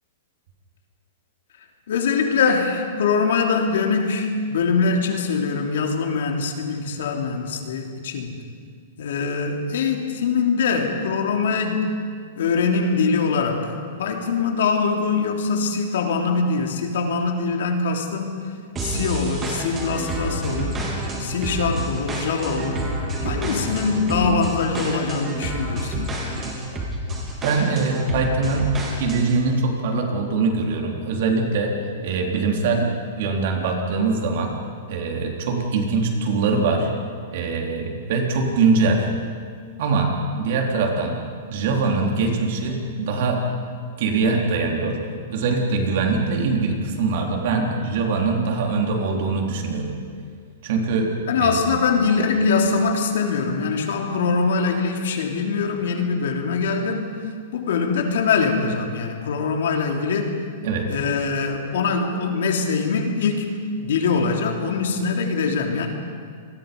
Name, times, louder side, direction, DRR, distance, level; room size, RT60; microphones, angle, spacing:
voice 1, 1.9-8.3 9.0-11.9 12.3-13.7 14.0-18.3 18.8-20.9 21.2-22.8 23.2-26.2 51.2-57.2 57.5-60.4 60.9-65.9, left 5 dB, 75° left, 3 dB, 3.3 m, -23 dB
sound 1, 18.8-29.4, right 1 dB, 15° right, 3.5 m, -29 dB
voice 2, 27.4-28.7 29.0-31.7 32.0-34.5 34.9-36.9 37.3-39.0 39.8-41.2 41.5-43.4 44.0-45.0 45.3-49.9 50.6-51.1 51.4-51.6 60.6-60.9, right 4 dB, 55° right, 1 dB, 3.8 m, -22 dB
27.0 x 21.0 x 5.4 m, 2.1 s
hypercardioid pair, 160°, 0 cm